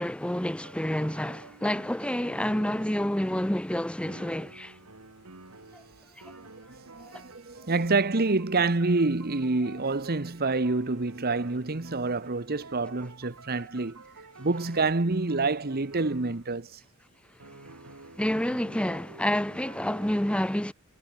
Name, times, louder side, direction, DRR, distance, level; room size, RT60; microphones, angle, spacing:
voice 1, 0.0-4.8 5.7-5.8 6.2-6.3 7.0-7.2 18.2-20.7, left 1 dB, 5° left, 0.8 m, -29 dB
sound 1, 0.6-3.4 4.1-16.5 17.4-20.1, right 3 dB, 85° right, 3.3 m, -49 dB
voice 2, 6.4-14.0 14.4-16.8, right 3 dB, 45° right, 1.2 m, -27 dB
head